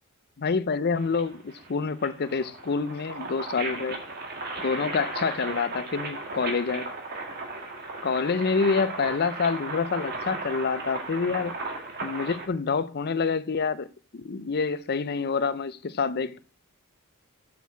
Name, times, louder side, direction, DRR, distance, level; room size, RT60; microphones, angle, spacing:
voice 1, 0.4-4.0 4.6-6.9 8.0-11.5 12.0-13.9 14.1-16.4, left 5 dB, 45° left, 0.5 m, -27 dB
sound 1, 0.9-12.5, right 3 dB, 45° right, 1.9 m, -36 dB
7.1 x 6.2 x 7.4 m
head